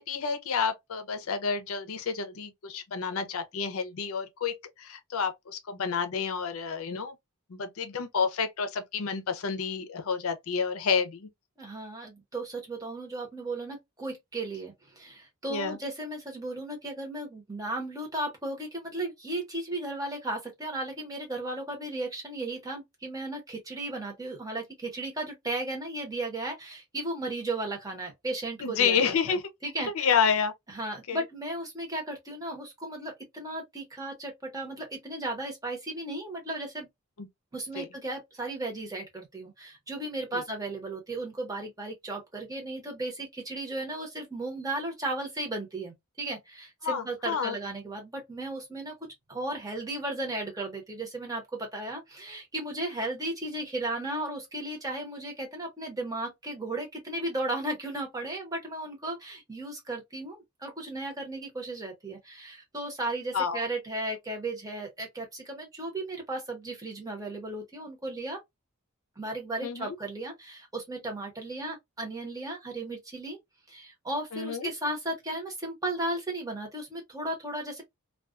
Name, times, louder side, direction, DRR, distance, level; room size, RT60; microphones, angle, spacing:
voice 1, 0.0-7.2 7.5-11.3 15.5-15.8 28.6-29.4 29.8-30.5 31.1-31.2 37.2-37.3 37.8-37.9 40.3-40.4 46.8-47.6 63.3-63.6 69.6-70.0 74.3-74.7, left 6 dB, 70° left, 0.5 m, -29 dB
voice 2, 11.6-30.1 30.7-36.9 37.5-48.9 49.3-68.4 69.2-73.4 73.7-77.8, right 2 dB, 15° right, 0.9 m, -35 dB
2.3 x 2.3 x 2.4 m
head